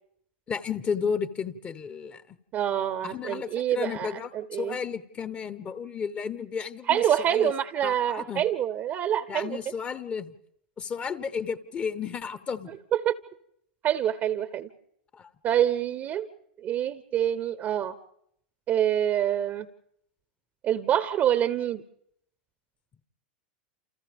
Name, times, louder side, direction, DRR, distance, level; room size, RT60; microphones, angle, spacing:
voice 1, 0.5-2.4 3.0-7.5 7.8-8.4 9.3-10.3 10.8-12.7 15.1-15.3, left 6 dB, 25° left, 14 dB, 0.9 m, -33 dB
voice 2, 2.5-4.8 6.9-9.6 13.0-13.1 13.8-14.7 15.4-16.3 16.6-17.9 18.7-19.7 20.6-21.8, right 10 dB, 40° right, 13 dB, 0.8 m, -26 dB
29.0 x 28.0 x 3.5 m, 0.73 s
hypercardioid pair, 100°, 5 cm